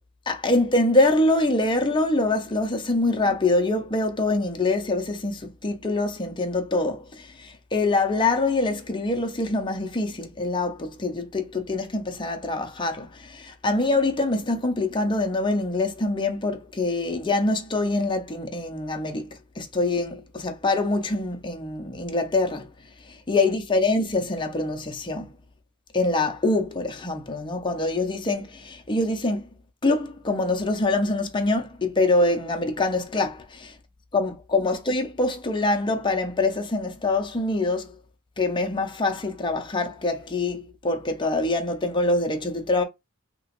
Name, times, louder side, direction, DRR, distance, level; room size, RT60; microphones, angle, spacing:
voice 1, 0.3-19.3 19.6-22.7 23.3-25.3 25.9-29.5 29.8-33.4 34.1-37.9 38.4-42.8, left 2 dB, 20° left, 0.6 m, -24 dB
2.9 x 2.9 x 2.9 m
head